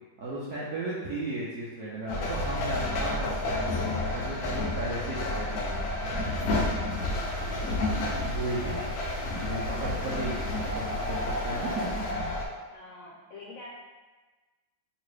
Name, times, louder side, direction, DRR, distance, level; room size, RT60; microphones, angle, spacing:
voice 1, 0.2-5.8 8.2-8.7 9.4-12.3, right 2 dB, 75° right, -7 dB, 0.9 m, -35 dB
train toilet Moscow to Voronezh, 2.1-12.5, left 1 dB, 90° left, 0.8 m, -30 dB
voice 2, 6.9-7.4 7.9-8.2 11.5-11.7 12.7-13.7, left 2 dB, 75° left, -4 dB, 1.2 m, -46 dB
Stream, 6.9-12.1, equal, 5° left, 0.9 m, -43 dB
3.0 x 2.9 x 3.2 m, 1.3 s
omnidirectional pair, 2.2 m